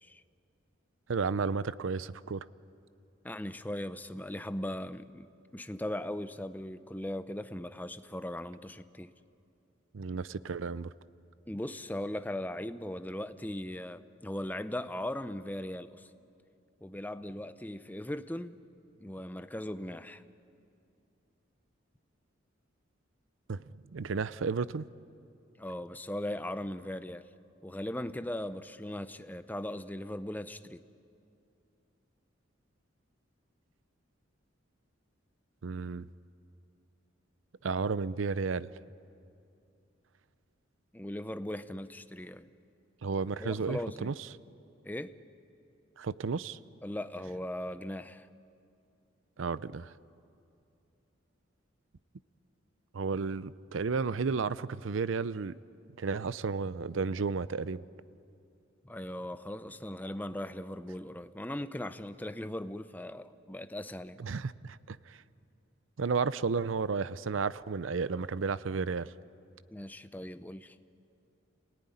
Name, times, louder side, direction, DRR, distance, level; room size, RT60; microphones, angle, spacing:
voice 1, 1.1-2.4 9.9-10.9 23.5-23.6 23.9-24.9 35.6-36.1 37.6-38.7 43.0-44.1 46.0-46.6 49.4-49.9 52.9-55.6 56.0-57.8 64.2-65.2 66.0-69.1, right 4 dB, 75° right, 0.5 m, -32 dB
voice 2, 3.2-5.3 5.5-9.1 11.5-16.1 16.8-18.6 19.0-20.2 25.6-27.3 27.6-30.8 40.9-42.5 43.4-44.1 44.8-45.2 46.8-48.3 58.8-64.2 69.7-70.8, left 1 dB, 10° left, 0.7 m, -38 dB
30.0 x 18.0 x 10.0 m
head